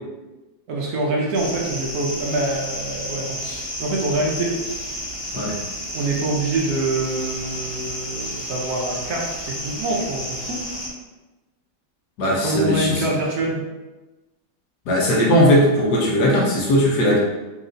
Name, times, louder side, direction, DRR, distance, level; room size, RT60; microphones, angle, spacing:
voice 1, 0.7-4.6 5.9-10.7 12.4-13.6, right 2 dB, 60° right, -3 dB, 1.3 m, -25 dB
sound 1, 1.3-10.9, equal, 25° left, 0.9 m, -31 dB
voice 2, 12.2-13.1 14.9-17.2, equal, 70° left, -2 dB, 1.4 m, -18 dB
4.4 x 3.1 x 3.9 m, 1.1 s
omnidirectional pair, 1.9 m